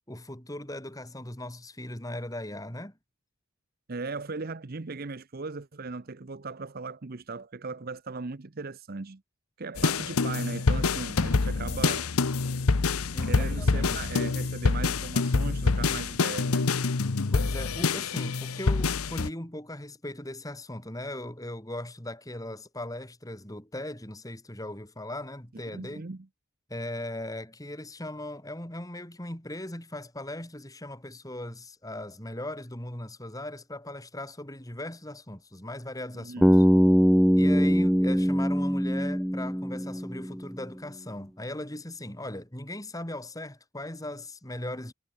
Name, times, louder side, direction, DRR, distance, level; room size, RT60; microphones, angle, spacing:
voice 1, 0.1-3.0 13.1-14.1 16.9-17.0 17.3-26.0 26.7-36.6 37.4-44.9, left 1 dB, 15° left, 3.2 m, -38 dB
voice 2, 3.9-9.2 9.6-12.4 13.2-16.7 25.7-26.3 36.1-36.6, right 3 dB, 45° right, 0.7 m, -38 dB
sound 1, 9.8-19.3, left 4 dB, 80° left, 0.9 m, -26 dB
Bass guitar, 36.4-40.5, equal, ahead, 0.3 m, -22 dB
head